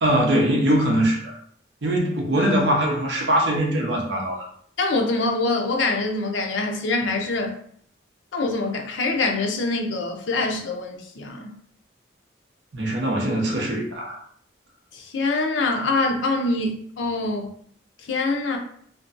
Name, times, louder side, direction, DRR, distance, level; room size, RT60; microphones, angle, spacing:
voice 1, 0.0-1.4 1.8-4.5 12.7-14.2, right 1 dB, 65° right, -1 dB, 0.7 m, -22 dB
voice 2, 4.8-7.6 8.3-11.5 14.9-17.5 18.1-18.6, left 3 dB, 75° left, 2 dB, 0.5 m, -24 dB
2.5 x 2.2 x 2.5 m, 0.63 s
head